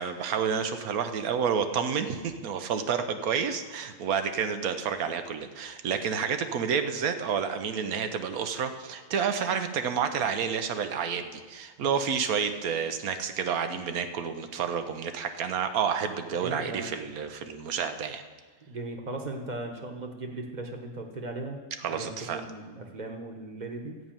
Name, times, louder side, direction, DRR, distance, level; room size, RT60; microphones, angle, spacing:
voice 1, 0.0-18.2 21.8-22.4, right 7 dB, 85° right, 8 dB, 1.2 m, -29 dB
voice 2, 16.4-16.9 18.7-21.6 21.9-23.9, right 2 dB, 35° right, 3 dB, 1.1 m, -37 dB
12.5 x 5.5 x 8.8 m, 1.4 s
omnidirectional pair, 1.5 m